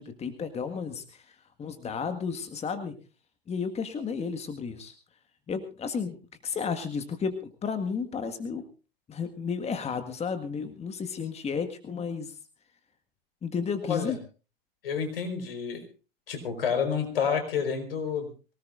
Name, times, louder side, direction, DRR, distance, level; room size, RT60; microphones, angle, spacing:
voice 1, 0.0-2.9 3.5-4.9 5.5-6.2 6.4-8.6 9.1-12.4 13.4-14.2, left 6 dB, 20° left, 9 dB, 1.7 m, -33 dB
voice 2, 14.8-15.8 16.3-18.5, left 6 dB, 75° left, 6 dB, 4.6 m, -29 dB
24.0 x 18.0 x 2.5 m, 0.34 s
hypercardioid pair, 95°, 29 cm